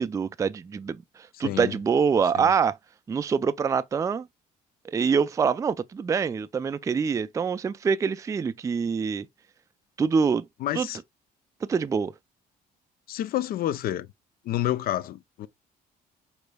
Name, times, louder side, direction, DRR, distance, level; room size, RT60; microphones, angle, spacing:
voice 1, 0.0-2.8 3.1-4.3 4.8-9.3 10.0-10.4 10.7-10.9 11.6-12.1, right 6 dB, 20° right, 0.3 m, -25 dB
voice 2, 1.4-1.8 2.3-2.5 10.6-11.0 13.1-14.1 14.4-15.5, left 13 dB, 60° left, 0.5 m, -29 dB
5.0 x 4.3 x 2.2 m
cardioid pair, 110°, 17 cm